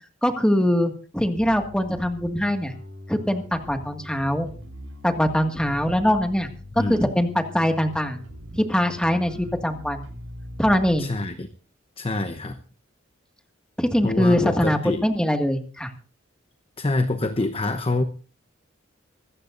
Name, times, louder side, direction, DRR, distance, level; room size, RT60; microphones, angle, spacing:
voice 1, 0.2-2.7 3.1-4.5 5.0-6.5 6.8-8.2 8.5-10.0 10.6-11.1 13.8-15.9, equal, 5° left, 4 dB, 1.9 m, -22 dB
Bass guitar, 1.4-11.0, equal, 80° right, 7.4 m, -41 dB
voice 2, 6.7-7.1 11.0-11.5 12.0-12.6 14.0-15.0 16.8-18.0, left 2 dB, 30° left, 8 dB, 0.9 m, -26 dB
24.5 x 14.0 x 2.6 m, 0.40 s
head